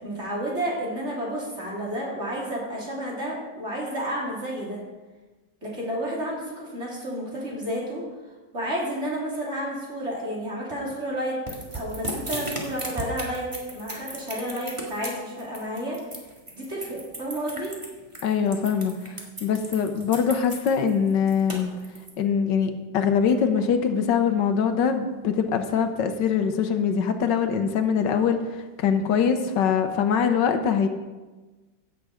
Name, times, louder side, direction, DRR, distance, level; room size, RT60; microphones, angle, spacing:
voice 1, 0.0-4.8 5.6-8.0 8.5-11.3 11.7-13.5 13.7-16.0 16.6-17.7, equal, 35° right, -5 dB, 3.6 m, -31 dB
sound 1, 11.5-22.1, right 1 dB, 15° right, 1.8 m, -36 dB
voice 2, 18.2-18.9 19.4-21.7 22.2-28.4 28.8-30.9, left 7 dB, 75° left, 7 dB, 1.5 m, -23 dB
16.0 x 6.9 x 5.0 m, 1.2 s
omnidirectional pair, 2.0 m